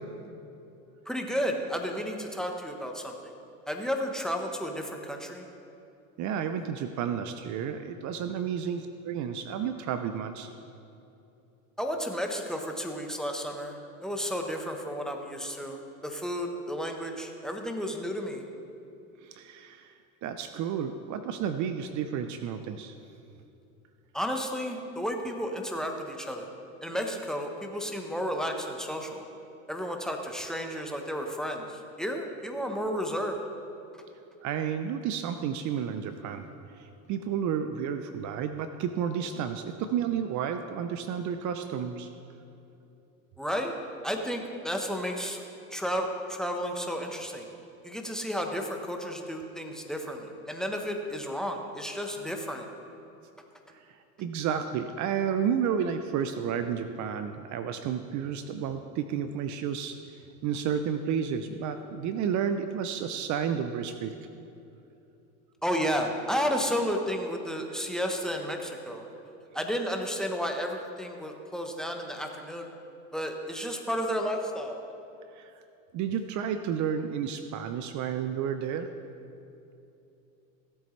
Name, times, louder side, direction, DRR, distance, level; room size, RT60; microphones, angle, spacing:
voice 1, 1.1-3.1 3.7-5.5 11.8-13.8 14.0-18.4 24.1-26.5 26.8-29.3 29.7-33.4 43.4-43.7 44.0-45.4 45.7-47.5 47.8-52.7 65.6-69.0 69.5-72.7 73.1-74.8, equal, ahead, 3 dB, 1.1 m, -32 dB
voice 2, 6.2-10.5 19.2-19.9 20.2-22.9 34.4-36.5 37.1-42.1 54.2-59.9 60.4-64.1 67.8-67.9 75.4-75.5 75.9-78.9, right 8 dB, 45° right, 9 dB, 0.6 m, -31 dB
17.0 x 8.0 x 3.3 m, 2.8 s
hypercardioid pair, 100°, 42 cm